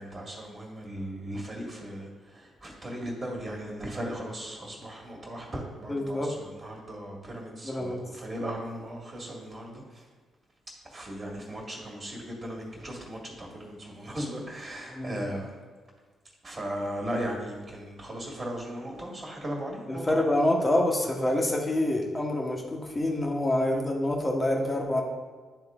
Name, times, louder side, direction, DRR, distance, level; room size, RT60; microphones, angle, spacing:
voice 1, 0.0-2.1 2.3-9.8 10.9-15.6 16.4-20.2, equal, 30° right, -1 dB, 2.1 m, -37 dB
voice 2, 5.9-6.3 7.6-8.0 14.9-15.2 19.9-25.0, left 1 dB, 25° left, 0 dB, 1.5 m, -26 dB
10.5 x 3.7 x 3.7 m, 1.4 s
hypercardioid pair, 40°, 0 cm